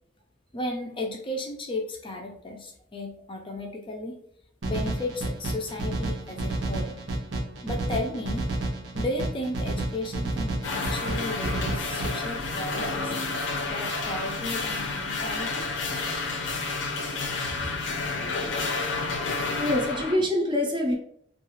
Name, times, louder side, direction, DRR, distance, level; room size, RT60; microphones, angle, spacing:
voice 1, 0.5-4.2 4.6-7.0 7.6-8.4 8.9-13.1 13.7-15.7, left 1 dB, 25° left, 2 dB, 0.4 m, -34 dB
sound 1, 4.6-12.1, right 2 dB, 90° right, 0.7 m, -31 dB
sound 2, 10.6-20.2, left 3 dB, 75° left, 0.6 m, -30 dB
voice 2, 18.2-18.7 19.6-21.0, left 1 dB, 25° right, 1 dB, 0.5 m, -27 dB
2.3 x 2.3 x 3.0 m, 0.67 s
head